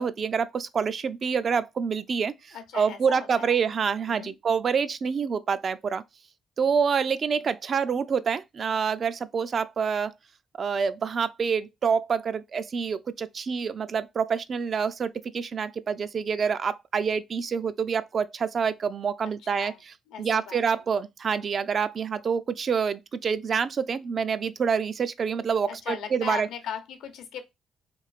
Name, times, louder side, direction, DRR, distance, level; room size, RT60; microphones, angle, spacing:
voice 1, 0.0-6.0 6.6-10.1 10.5-19.7 20.2-26.5, right 6 dB, 50° right, 0.3 m, -27 dB
voice 2, 2.5-3.6 4.1-4.3 19.2-19.8 20.1-20.9 25.6-27.4, left 8 dB, 85° left, 0.7 m, -38 dB
3.1 x 2.5 x 2.4 m
cardioid pair, 90°, 0 cm